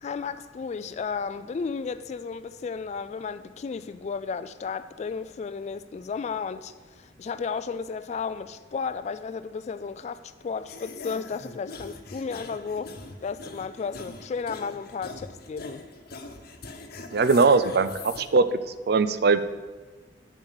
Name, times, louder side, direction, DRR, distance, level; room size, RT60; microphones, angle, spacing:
voice 1, 0.0-13.0 13.2-15.9, left 5 dB, 40° left, 0.3 m, -33 dB
sound 1, 10.7-18.2, left 3 dB, 55° left, 1.0 m, -42 dB
voice 2, 17.1-18.5 18.9-19.4, right 4 dB, 60° right, 0.5 m, -20 dB
9.2 x 7.1 x 6.4 m
head